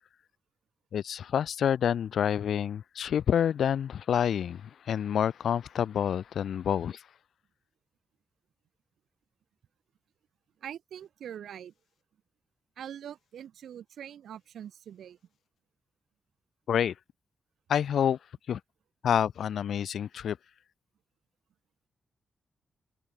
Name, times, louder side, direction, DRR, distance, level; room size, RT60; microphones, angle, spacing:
voice 1, 0.9-7.0 16.7-16.9 17.7-18.2 18.5-18.6 19.0-20.4, left 9 dB, 80° left, 1.1 m, -28 dB
voice 2, 10.6-11.7 12.8-15.2, right 9 dB, 85° right, 6.1 m, -43 dB
cardioid pair, 80°, 0 cm